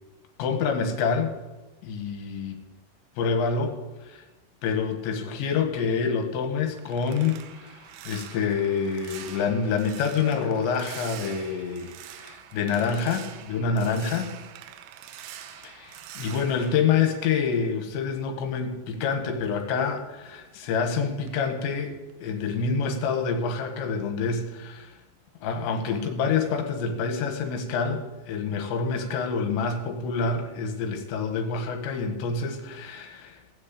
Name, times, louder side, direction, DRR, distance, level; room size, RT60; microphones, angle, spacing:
voice 1, 0.4-1.3 1.8-2.6 3.2-4.3 4.6-11.9 12.2-14.3 15.6-25.0 25.4-33.4, left 5 dB, 80° left, 5 dB, 3.8 m, -27 dB
sound 1, 6.4-17.9 18.2-20.9 21.2-21.5 21.9-22.2, right 10 dB, 80° right, 3.0 m, -45 dB
17.5 x 6.5 x 8.3 m, 1.1 s
omnidirectional pair, 5.1 m